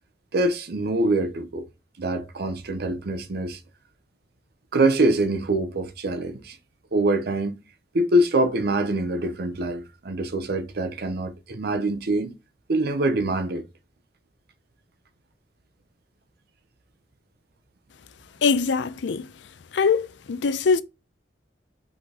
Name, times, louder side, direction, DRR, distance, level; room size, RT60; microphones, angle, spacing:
voice 1, 0.3-1.7 2.0-3.6 4.7-6.6 6.9-7.6 7.9-12.3 12.7-13.7, right 1 dB, 60° right, 0.7 m, -24 dB
voice 2, 18.4-19.3 19.7-20.8, left 5 dB, 80° left, 0.5 m, -22 dB
4.8 x 3.9 x 2.8 m
head